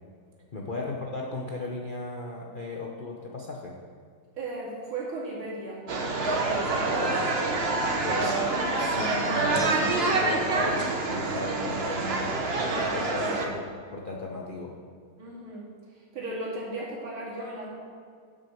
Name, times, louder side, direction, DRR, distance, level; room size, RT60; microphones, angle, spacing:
voice 1, 0.5-3.8 6.9-8.4 8.8-12.4 12.8-13.6 13.9-14.8, left 2 dB, 60° left, -1 dB, 0.5 m, -36 dB
voice 2, 4.4-5.9 13.2-13.3 15.2-15.6 16.1-17.7, right 2 dB, 90° right, -5 dB, 3.2 m, -36 dB
sound 1, 5.9-13.5, right 2 dB, 45° right, 0.9 m, -26 dB
8.4 x 6.4 x 7.1 m, 2.1 s
omnidirectional pair, 2.2 m